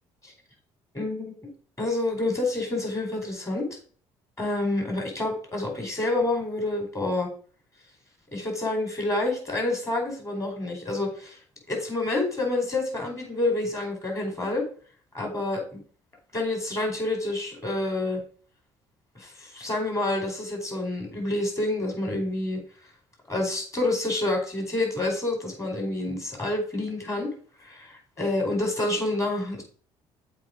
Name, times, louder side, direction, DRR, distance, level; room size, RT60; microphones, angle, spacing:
voice 1, 0.9-1.5 1.8-3.8 4.4-7.3 8.3-11.4 11.7-14.7 15.1-15.8 16.3-18.2 19.1-22.6 23.3-27.3 27.6-29.6, left 2 dB, 25° left, 2 dB, 4.4 m, -28 dB
7.6 x 4.7 x 5.1 m, 0.42 s
supercardioid pair, 65°, 13 cm